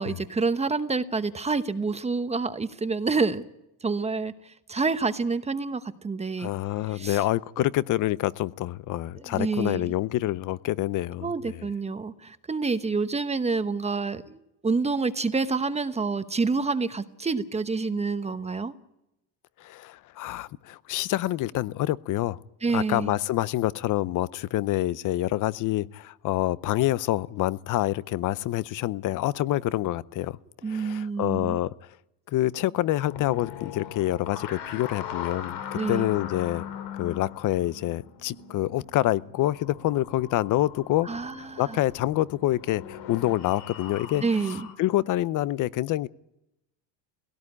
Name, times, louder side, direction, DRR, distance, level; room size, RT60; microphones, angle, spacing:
voice 1, 0.0-3.4 3.8-6.5 6.9-7.2 9.2-9.9 11.2-18.7 22.6-23.1 30.6-31.6 35.7-36.1 41.0-41.8 44.2-44.6, right 4 dB, 15° right, 11 dB, 0.9 m, -28 dB
voice 2, 6.4-11.7 19.6-22.4 22.7-30.4 30.7-31.7 32.3-36.6 36.9-41.1 41.6-44.2 44.8-46.1, left 15 dB, 50° left, 19 dB, 0.7 m, -27 dB
sound 1, 33.0-44.7, left 8 dB, 75° left, 3.3 m, -40 dB
17.5 x 17.0 x 9.8 m, 0.86 s
cardioid pair, 125°, 41 cm